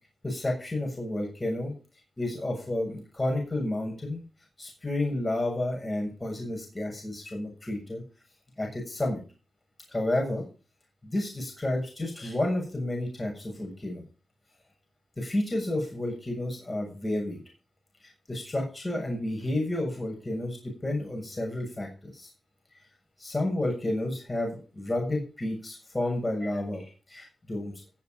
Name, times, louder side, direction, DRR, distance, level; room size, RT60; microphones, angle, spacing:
voice 1, 0.2-1.7 2.2-4.2 4.6-8.0 8.6-9.2 9.9-10.5 11.0-14.0 15.2-17.4 18.3-22.3 23.2-27.7, left 1 dB, 25° left, 0 dB, 7.0 m, -31 dB
16.5 x 7.5 x 5.3 m, 0.35 s
cardioid pair, 55°, 0 cm